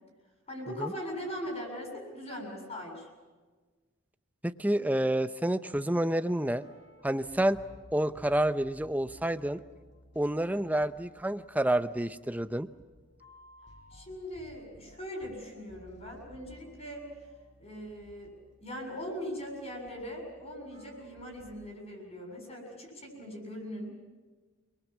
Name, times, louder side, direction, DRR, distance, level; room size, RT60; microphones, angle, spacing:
voice 1, 0.5-3.1 13.9-17.1 17.6-18.3 18.6-24.0, equal, 30° left, 1 dB, 7.4 m, -40 dB
voice 2, 4.4-6.6 7.0-7.6 7.9-9.6 10.2-12.7, right 1 dB, 10° right, 12 dB, 0.7 m, -29 dB
sound 1, 6.5-21.6, equal, 55° left, 5.9 m, -57 dB
29.5 x 22.0 x 7.4 m, 1.4 s
head